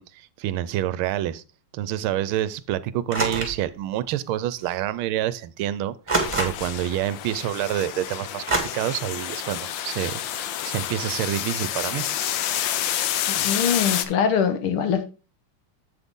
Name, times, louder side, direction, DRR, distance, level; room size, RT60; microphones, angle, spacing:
voice 1, 0.0-1.4 1.7-12.0, right 12 dB, 80° right, 1.4 m, -28 dB
sound 1, 3.1-3.6 4.7-4.8 6.1-6.8 8.5-8.6, right 3 dB, 15° right, 1.7 m, -25 dB
sound 2, 6.2-14.1, left 11 dB, 70° left, 1.3 m, -29 dB
voice 2, 13.3-15.0, left 7 dB, 85° left, 2.0 m, -23 dB
7.9 x 7.8 x 3.6 m
omnidirectional pair, 2.4 m